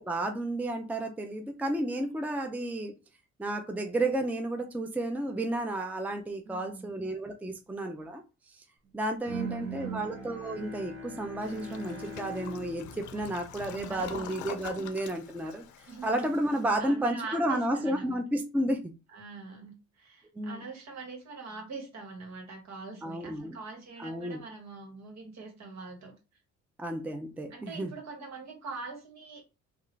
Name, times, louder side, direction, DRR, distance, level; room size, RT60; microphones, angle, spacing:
voice 1, 0.0-2.9 3.4-8.2 8.9-15.6 16.0-18.9 20.3-20.7 23.0-23.6 24.0-24.4 26.8-27.9, right 1 dB, 5° right, 0.5 m, -32 dB
voice 2, 6.4-7.0 9.2-10.1 13.1-13.3 13.6-14.3 15.9-16.3 16.8-18.2 19.1-26.1 27.5-29.4, right 4 dB, 60° right, 1.6 m, -43 dB
Bowed string instrument, 9.3-14.3, right 3 dB, 40° right, 1.3 m, -41 dB
Toilet flush, 11.4-16.7, left 10 dB, 75° left, 0.5 m, -45 dB
3.5 x 2.4 x 3.3 m
cardioid pair, 90°, 30 cm